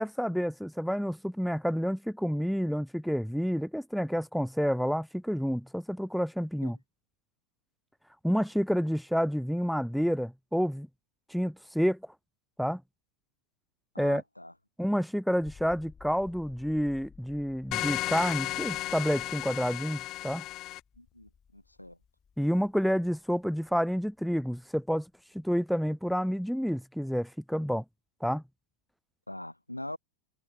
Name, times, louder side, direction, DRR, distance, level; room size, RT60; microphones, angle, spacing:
voice 1, 0.0-6.8 8.2-10.9 11.3-12.0 12.6-12.8 14.0-14.2 14.8-20.4 22.4-25.1 25.3-27.8 28.2-28.4, equal, ahead, 0.4 m, -29 dB
voice 2, 13.9-14.5 21.0-22.0 29.3-30.0, left 1 dB, 85° left, 6.9 m, -43 dB
sound 1, 15.4-25.5, left 6 dB, 20° left, 6.9 m, -57 dB
sound 2, 17.7-20.8, left 17 dB, 35° left, 4.5 m, -34 dB
figure-of-eight pair, 90°, 0 cm